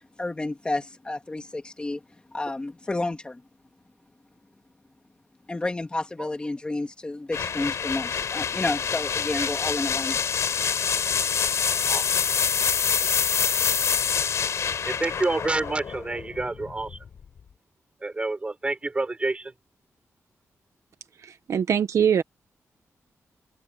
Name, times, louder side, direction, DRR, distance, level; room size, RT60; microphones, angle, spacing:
voice 1, 0.2-2.0 2.3-3.4 5.5-10.8, left 2 dB, 20° left, 2.3 m, -31 dB
sound 1, 7.3-17.1, left 7 dB, 65° left, 4.2 m, -26 dB
voice 2, 11.9-12.2 13.0-13.1 15.0-17.0 18.0-19.5, right 2 dB, 20° right, 5.1 m, -28 dB
voice 3, 21.2-22.2, right 8 dB, 70° right, 1.2 m, -23 dB
wide cardioid pair, 150°, 5 cm